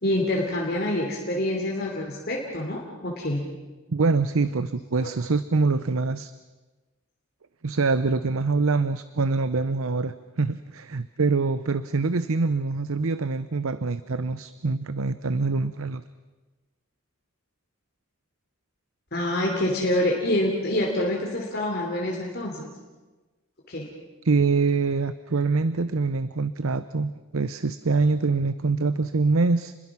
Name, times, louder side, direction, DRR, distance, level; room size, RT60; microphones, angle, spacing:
voice 1, 0.0-3.4 5.0-5.1 19.1-22.7 23.7-23.9, left 1 dB, 50° left, -1 dB, 3.1 m, -26 dB
voice 2, 3.9-6.3 7.6-16.0 24.2-29.7, right 4 dB, 80° right, 14 dB, 0.7 m, -24 dB
30.0 x 21.0 x 6.1 m, 1.2 s
head